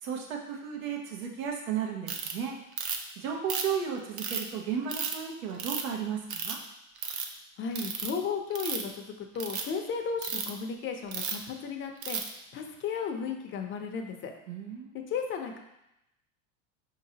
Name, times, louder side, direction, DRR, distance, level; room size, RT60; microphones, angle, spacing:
voice 1, 0.0-2.5 3.2-6.6 14.5-14.9, right 7 dB, 80° right, 1 dB, 1.0 m, -34 dB
Ratchet pawl, 2.1-2.3 2.8-3.1 3.5-4.4 4.9-5.1 5.6-5.9 6.3-6.6 7.0-7.2 7.7-8.1 8.5-8.9 9.3-9.6 10.2-10.5 11.1-11.4 12.0-12.3, right 6 dB, 50° right, 0.6 m, -33 dB
voice 2, 7.6-14.3 15.1-15.6, left 6 dB, 30° left, 3 dB, 0.6 m, -34 dB
5.0 x 2.9 x 2.8 m, 0.86 s
supercardioid pair, 110°, 39 cm